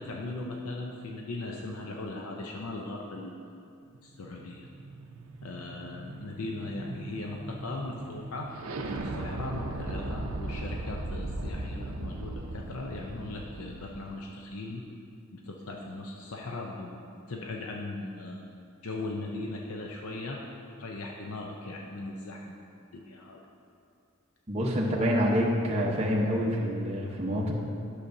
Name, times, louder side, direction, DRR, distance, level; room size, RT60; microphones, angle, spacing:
voice 1, 0.0-3.4 4.0-4.7 5.4-8.5 8.9-14.8 15.3-16.9 17.3-18.5 18.8-20.4 20.8-23.4, left 2 dB, 80° left, 0 dB, 0.6 m, -38 dB
sound 1, 3.9-14.1, right 2 dB, 70° right, 0.6 m, -38 dB
voice 2, 24.5-27.5, equal, 30° right, -3 dB, 0.9 m, -27 dB
11.0 x 6.7 x 2.6 m, 2.5 s
head